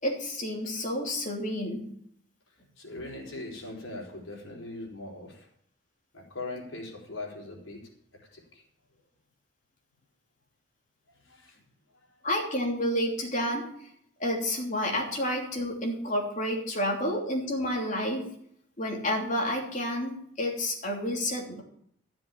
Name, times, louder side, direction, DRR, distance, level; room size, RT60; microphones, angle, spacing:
voice 1, 0.0-1.9 12.2-13.7 14.2-18.3 18.8-21.6, left 1 dB, 40° left, 0 dB, 3.1 m, -30 dB
voice 2, 2.8-5.5 6.1-7.9 8.3-8.6 11.1-11.6, left 2 dB, 75° left, -1 dB, 4.5 m, -40 dB
13.5 x 7.6 x 7.2 m, 0.67 s
head